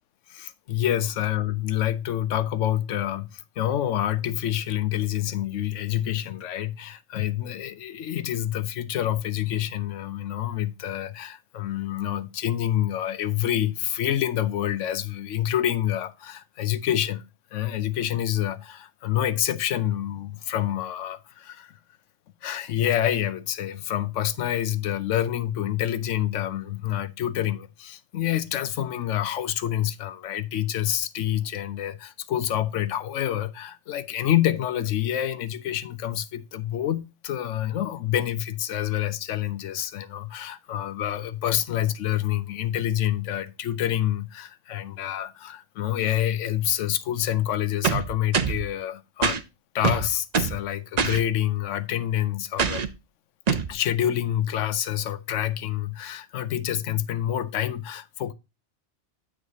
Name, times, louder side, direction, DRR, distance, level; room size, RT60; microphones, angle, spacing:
voice 1, 0.3-17.2 17.5-21.8 22.4-49.4 49.7-52.9 53.7-58.3, left 11 dB, 80° left, 1.0 m, -27 dB
sound 1, 47.8-48.7 49.2-49.4 49.8-50.6 51.0-51.2 52.6-52.9 53.5-53.7, right 6 dB, 45° right, 0.6 m, -24 dB
9.3 x 7.5 x 2.7 m
omnidirectional pair, 1.3 m